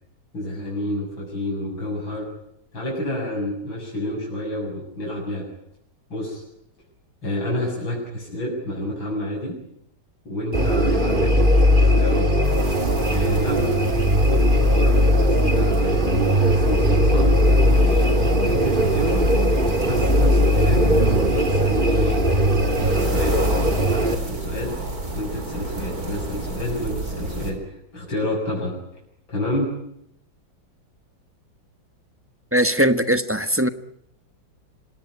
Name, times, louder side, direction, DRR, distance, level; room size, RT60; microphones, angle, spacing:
voice 1, 0.3-2.3 2.7-5.5 6.1-6.4 7.2-9.5 10.3-11.3 11.8-12.3 13.1-13.9 14.2-18.1 18.4-19.3 19.8-22.3 22.8-23.4 23.9-24.8 25.1-28.8 29.3-29.7, left 1 dB, 85° left, -2 dB, 8.1 m, -29 dB
sound 1, 10.5-24.1, equal, 25° right, 2.2 m, -19 dB
sound 2, 12.4-27.5, right 2 dB, 50° right, 5.0 m, -30 dB
voice 2, 32.5-33.7, equal, 10° right, 10 dB, 0.9 m, -20 dB
26.5 x 19.0 x 9.6 m, 0.76 s
omnidirectional pair, 2.1 m